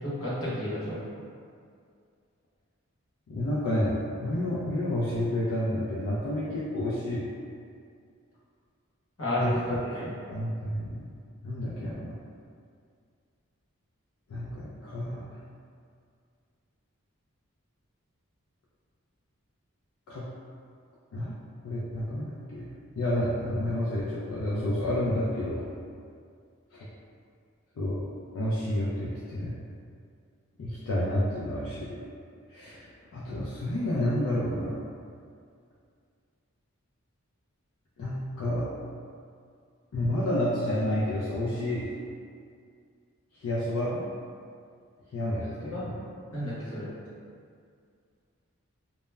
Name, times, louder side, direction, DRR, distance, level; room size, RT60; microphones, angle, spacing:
voice 1, 0.0-1.0 9.2-10.1 45.7-45.9 46.3-46.9, left 1 dB, 70° left, -9 dB, 0.8 m, -31 dB
voice 2, 3.3-7.3 9.4-9.8 10.3-11.1 11.4-12.2 14.3-15.4 20.1-20.3 21.1-21.4 21.6-22.7 23.0-25.7 26.7-26.9 27.8-28.0 28.3-29.6 30.6-32.0 32.5-34.7 38.0-38.7 39.9-41.9 43.3-44.1 45.1-45.9, left 1 dB, 90° left, -8 dB, 0.4 m, -30 dB
2.1 x 2.0 x 3.2 m, 2.3 s
head